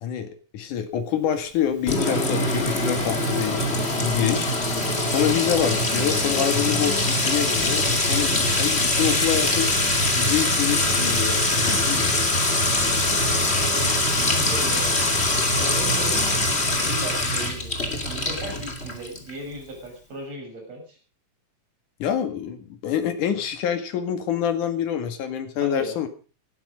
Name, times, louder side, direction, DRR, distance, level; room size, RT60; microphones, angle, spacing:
voice 1, 0.0-4.5 5.1-9.7 10.1-12.1 22.0-26.1, left 9 dB, 70° left, 7 dB, 3.4 m, -26 dB
Sink (filling or washing) / Trickle dribble / Fill (with liquid), 1.9-19.3, left 2 dB, 20° left, 2.4 m, -23 dB
voice 2, 13.0-14.9 15.4-16.5 16.7-17.8 18.0-21.0 25.6-26.0, right 1 dB, 50° right, 1 dB, 8.0 m, -37 dB
17.5 x 12.5 x 5.3 m, 0.38 s
omnidirectional pair, 3.8 m